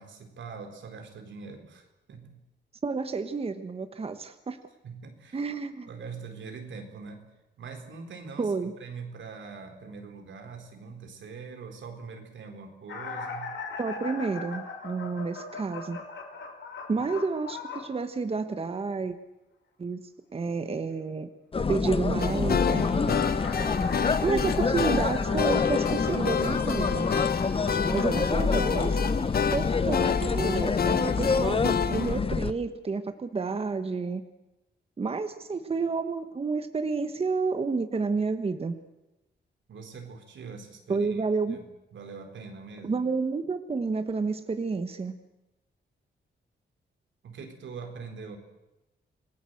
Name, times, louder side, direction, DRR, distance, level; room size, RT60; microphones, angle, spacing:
voice 1, 0.0-2.4 4.8-5.5 5.9-7.3 7.6-13.5 17.0-17.1 39.7-41.2 41.5-41.6 41.9-43.0 47.2-48.4, right 5 dB, 85° right, 4 dB, 4.1 m, -43 dB
voice 2, 2.8-4.6 5.3-5.9 8.4-8.7 13.8-16.0 16.9-19.1 19.8-20.0 20.3-21.3 21.7-23.2 24.2-27.1 27.9-29.0 29.5-34.2 35.0-38.7 40.9-41.6 42.8-45.2, right 4 dB, 30° right, 9 dB, 1.2 m, -30 dB
sound 1, 12.9-17.9 22.8-28.9 30.0-30.2 31.2-31.3 31.7-31.8, left 4 dB, 75° left, 5.5 m, -39 dB
sound 2, 21.5-32.5, left 4 dB, 30° left, 0.9 m, -27 dB
sound 3, 22.2-32.2, left 7 dB, 55° left, 1.1 m, -30 dB
27.5 x 19.5 x 7.9 m, 0.97 s
wide cardioid pair, 140°, 19 cm